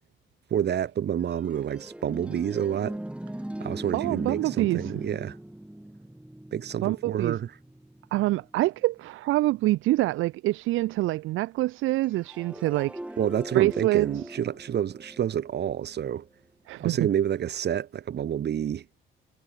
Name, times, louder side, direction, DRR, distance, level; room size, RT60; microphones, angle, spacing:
voice 1, 0.5-3.0 3.6-5.4 6.5-7.5 13.2-16.2 16.8-18.8, right 9 dB, 60° right, 1.7 m, -28 dB
sound 1, 1.2-8.9 12.0-16.1, right 1 dB, 5° right, 2.0 m, -40 dB
voice 2, 3.9-4.8 6.8-7.4 8.1-13.0 13.5-14.1 16.7-17.0, right 17 dB, 90° right, 0.8 m, -25 dB
cardioid pair, 90°, 20 cm